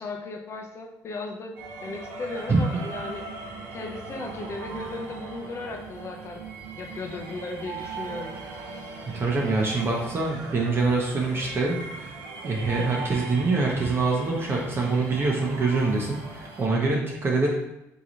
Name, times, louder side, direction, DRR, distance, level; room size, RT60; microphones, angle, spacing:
voice 1, 0.0-3.2 3.7-6.4 6.8-8.3, left 3 dB, 40° left, 2 dB, 0.8 m, -36 dB
sound 1, 1.6-16.7, right 4 dB, 80° right, 0.8 m, -39 dB
voice 2, 9.1-12.1 12.4-17.5, right 3 dB, 35° right, -2 dB, 1.0 m, -25 dB
3.8 x 3.0 x 3.9 m, 0.89 s
supercardioid pair, 85°, 7 cm